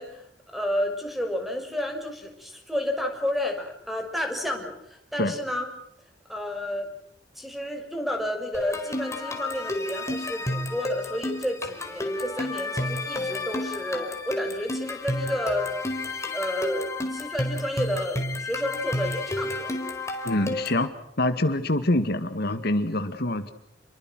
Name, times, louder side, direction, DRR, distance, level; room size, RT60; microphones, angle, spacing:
voice 1, 0.0-5.7 6.3-6.9 7.4-15.7 16.3-19.7, left 1 dB, ahead, 5 dB, 6.2 m, -31 dB
sound 1, 8.5-20.9, left 2 dB, 15° left, 4.7 m, -31 dB
voice 2, 20.2-20.9 21.2-23.5, left 1 dB, 60° left, 9 dB, 1.9 m, -25 dB
29.5 x 23.5 x 6.2 m, 0.77 s
head